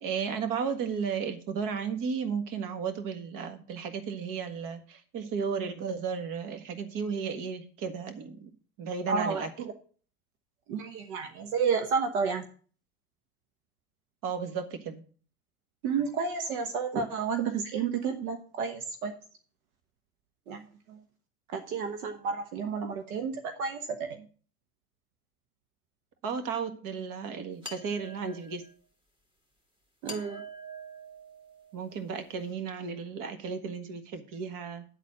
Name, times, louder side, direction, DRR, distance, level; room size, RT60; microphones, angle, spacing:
voice 1, 0.0-8.5 8.8-9.5 14.2-15.0 26.2-28.6 31.7-34.8, right 6 dB, 45° right, 8 dB, 1.6 m, -34 dB
voice 2, 9.1-9.7 10.7-12.4 15.8-19.1 20.5-21.0 21.5-24.3 30.0-30.4, right 5 dB, 65° right, 6 dB, 1.2 m, -31 dB
sound 1, 27.6-28.7 30.1-31.9, right 2 dB, 10° right, 2.1 m, -45 dB
10.0 x 4.2 x 7.6 m, 0.43 s
hypercardioid pair, 95°, 46 cm